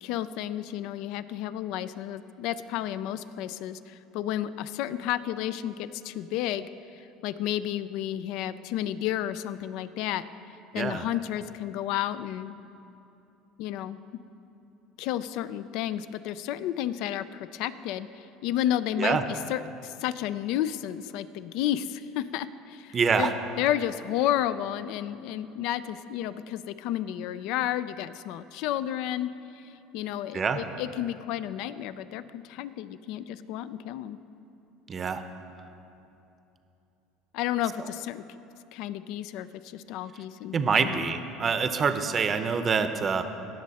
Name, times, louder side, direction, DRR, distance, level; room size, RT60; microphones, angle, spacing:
voice 1, 0.0-10.2 10.7-12.6 13.6-14.0 15.0-23.3 23.6-34.2 37.3-38.2 38.7-41.1, left 12 dB, 70° left, 15 dB, 0.4 m, -32 dB
voice 2, 22.9-23.3 30.3-30.6 34.9-35.2 40.5-43.2, right 5 dB, 35° right, 9 dB, 0.6 m, -26 dB
17.0 x 6.4 x 4.2 m, 2.9 s
supercardioid pair, 100°, 0 cm